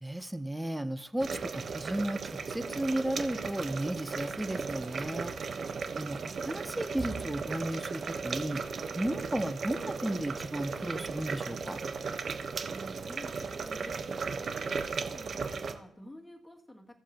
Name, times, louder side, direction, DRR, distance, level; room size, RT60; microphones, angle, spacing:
voice 1, 0.0-5.3 5.9-8.6 8.9-11.8, right 1 dB, 10° right, 12 dB, 0.8 m, -34 dB
sound 1, 1.2-15.7, right 5 dB, 50° right, 1.0 m, -36 dB
voice 2, 12.7-16.8, equal, 10° left, 1 dB, 2.3 m, -50 dB
17.0 x 7.1 x 2.9 m, 0.72 s
supercardioid pair, 65°, 0 cm